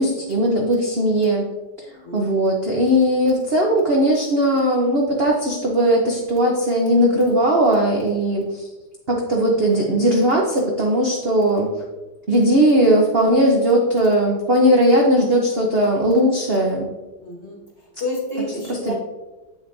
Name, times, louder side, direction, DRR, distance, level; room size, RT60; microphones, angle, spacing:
voice 1, 0.0-1.4 2.1-8.6 9.1-11.7 12.3-16.9 18.8-18.9, equal, 55° right, -1 dB, 0.6 m, -18 dB
voice 2, 2.0-2.4 17.2-18.9, left 1 dB, 35° left, -3 dB, 1.6 m, -30 dB
8.6 x 6.9 x 2.6 m, 1.1 s
omnidirectional pair, 2.3 m